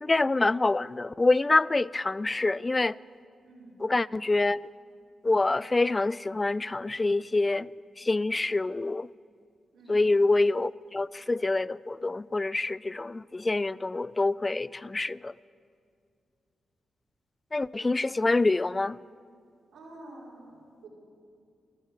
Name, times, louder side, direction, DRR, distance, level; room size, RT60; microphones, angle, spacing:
voice 1, 0.0-3.0 3.8-4.7 5.2-7.7 8.0-9.1 9.9-15.3 17.5-19.0, left 2 dB, 30° left, 0.3 m, -26 dB
voice 2, 3.4-3.8 9.7-10.1 19.7-20.9, right 2 dB, 75° right, 4.1 m, -48 dB
14.0 x 11.5 x 8.3 m
cardioid pair, 60°, 0 cm